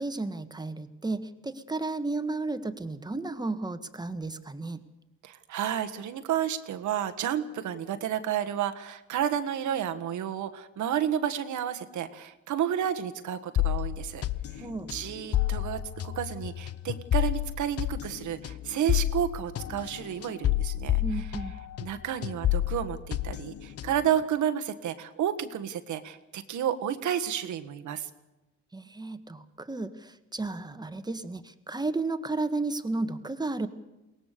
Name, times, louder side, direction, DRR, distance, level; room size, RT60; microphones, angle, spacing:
voice 1, 0.0-4.8 14.6-14.9 21.0-21.5 28.7-33.7, right 3 dB, 15° right, 10 dB, 1.5 m, -33 dB
voice 2, 5.2-14.2 14.5-21.2 21.8-28.1, right 9 dB, 75° right, 8 dB, 1.6 m, -31 dB
sound 1, 13.6-21.9 22.2-24.1, left 13 dB, 50° left, 0.8 m, -30 dB
22.5 x 18.5 x 6.8 m, 1.0 s
cardioid pair, 90°, 30 cm